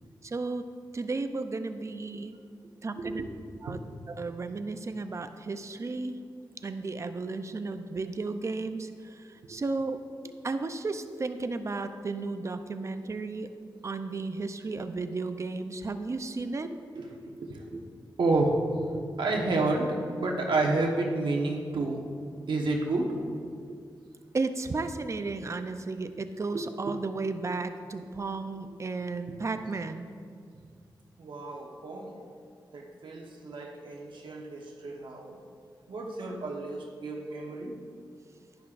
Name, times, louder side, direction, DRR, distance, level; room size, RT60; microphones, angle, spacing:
voice 1, 0.2-0.6 0.9-2.3 2.8-3.2 3.6-3.8 4.1-6.2 6.6-8.9 9.5-10.0 10.4-13.5 13.8-16.7 24.3-30.1, right 3 dB, 40° right, 9 dB, 0.5 m, -33 dB
voice 2, 3.0-3.3 3.7-3.8 16.6-17.8 18.2-22.0 22.5-23.2 26.5-26.9 29.3-29.4 31.2-32.2 32.7-35.3 35.9-37.7, right 2 dB, 80° right, 0 dB, 1.1 m, -30 dB
10.5 x 10.5 x 2.5 m, 2.3 s
wide cardioid pair, 80°, 8 cm